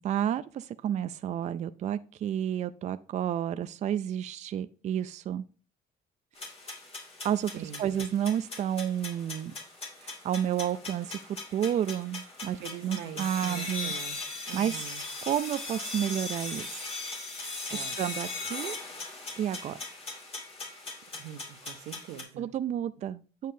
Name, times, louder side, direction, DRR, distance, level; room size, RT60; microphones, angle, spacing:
voice 1, 0.0-5.4 7.2-9.5 10.0-12.6 12.8-13.9 14.5-14.8 15.2-16.9 17.7-18.8 19.4-19.8 22.4-23.5, right 10 dB, 45° right, 12 dB, 0.4 m, -31 dB
sound 1, 6.4-22.2, left 3 dB, 35° left, 2.5 m, -39 dB
voice 2, 7.5-7.9 12.5-14.2 14.5-15.0 17.7-18.0 21.1-22.5, right 10 dB, 85° right, 5 dB, 0.7 m, -43 dB
9.1 x 6.5 x 2.7 m, 0.36 s
cardioid pair, 110°, 17 cm